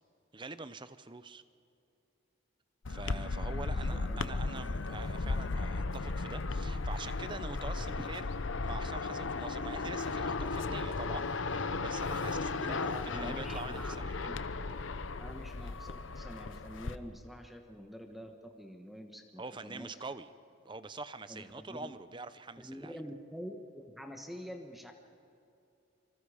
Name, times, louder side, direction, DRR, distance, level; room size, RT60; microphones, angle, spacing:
voice 1, 0.3-1.4 2.9-8.3 8.6-14.2 19.4-20.3 20.6-23.0, right 3 dB, 25° right, 13 dB, 0.6 m, -45 dB
sound 1, 2.9-17.0, left 3 dB, 70° left, 0.8 m, -35 dB
voice 2, 3.7-4.2 12.6-13.9 14.2-14.4 15.2-19.9 21.3-21.9 22.6-24.9, equal, ahead, 4 dB, 1.2 m, -46 dB
26.5 x 25.0 x 5.0 m, 2.6 s
head